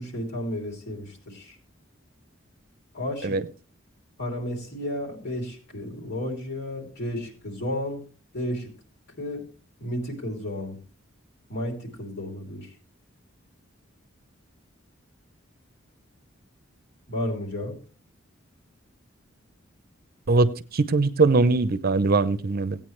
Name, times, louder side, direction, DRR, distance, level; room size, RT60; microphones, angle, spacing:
voice 1, 0.0-1.5 2.9-3.4 4.2-8.1 8.3-8.7 9.2-9.5 9.8-10.8 11.5-12.7 17.1-17.8, left 1 dB, 55° left, 0 dB, 3.1 m, -32 dB
voice 2, 20.3-22.8, right 3 dB, 50° right, 12 dB, 0.6 m, -21 dB
16.5 x 9.0 x 3.2 m, 0.38 s
head